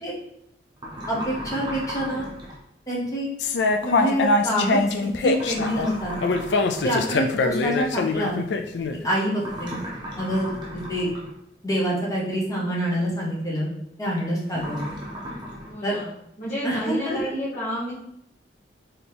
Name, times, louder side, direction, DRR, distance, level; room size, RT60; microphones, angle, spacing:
sound 1, 0.8-2.6 5.3-7.0 9.4-11.3 14.5-15.7, equal, 25° right, 0.8 m, -35 dB
voice 1, 1.1-2.3 2.9-3.3 3.8-4.8 5.2-6.1 6.8-8.4 9.0-9.8 10.2-11.1 11.6-13.7 14.0-14.8 15.8-16.0 16.6-17.2, equal, 20° left, -4 dB, 0.8 m, -26 dB
sound 2, 3.4-9.0, left 3 dB, 75° left, 0.4 m, -23 dB
voice 2, 15.7-16.1 16.4-17.9, equal, 50° left, -10 dB, 1.1 m, -30 dB
4.0 x 2.8 x 3.4 m, 0.79 s
head